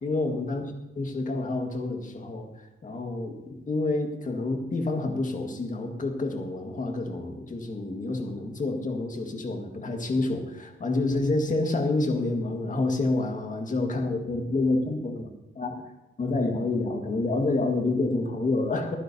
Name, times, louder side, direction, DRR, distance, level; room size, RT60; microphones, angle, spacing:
voice 1, 0.0-0.7 1.0-15.3 15.6-15.8 16.2-19.0, left 2 dB, 40° left, 3 dB, 1.7 m, -28 dB
24.0 x 9.9 x 2.8 m, 1.0 s
wide cardioid pair, 165°, 21 cm